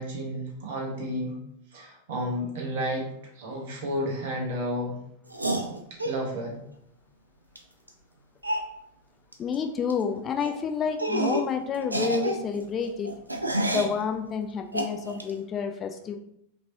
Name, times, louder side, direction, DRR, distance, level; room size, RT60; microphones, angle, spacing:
voice 1, 0.0-1.4 1.7-3.1 3.3-4.9 6.0-6.6, equal, 55° right, -1 dB, 1.3 m, -31 dB
sound 1, 5.3-6.2 7.6-7.7 7.9-8.0 8.4-8.7 9.3-9.6 9.8-10.0 10.4-10.6 11.0-11.5 11.8-14.0 14.7-15.3, right 1 dB, 85° right, 0.5 m, -29 dB
voice 2, 9.4-13.1 13.6-16.2, left 6 dB, 25° left, 5 dB, 0.4 m, -29 dB
4.9 x 3.0 x 2.7 m, 0.72 s
figure-of-eight pair, 90°, 0 cm